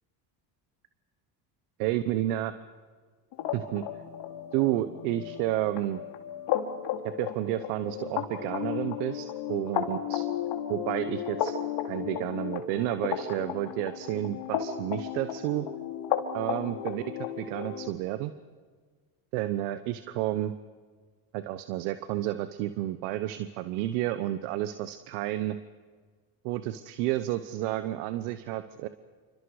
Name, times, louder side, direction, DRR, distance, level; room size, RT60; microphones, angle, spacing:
voice 1, 1.8-2.5 3.5-3.8 4.5-6.0 7.0-10.2 10.7-11.5 11.9-15.7 16.3-17.0 17.4-18.3 19.3-20.5 21.3-25.6 26.4-28.9, right 14 dB, 85° right, 12 dB, 1.1 m, -31 dB
sound 1, 3.3-17.9, left 9 dB, 65° left, 2.8 m, -34 dB
28.0 x 26.0 x 4.9 m, 1.6 s
supercardioid pair, 80°, 45 cm